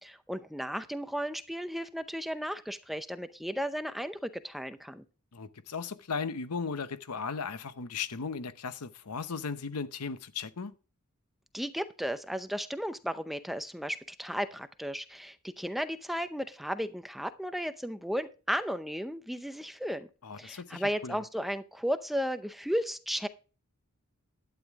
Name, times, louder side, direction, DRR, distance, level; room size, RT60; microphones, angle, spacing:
voice 1, 0.0-5.0 11.5-20.1 20.4-23.3, equal, ahead, 0.6 m, -34 dB
voice 2, 5.3-10.7 20.2-21.2, left 5 dB, 90° left, 0.8 m, -36 dB
11.5 x 9.3 x 3.6 m
head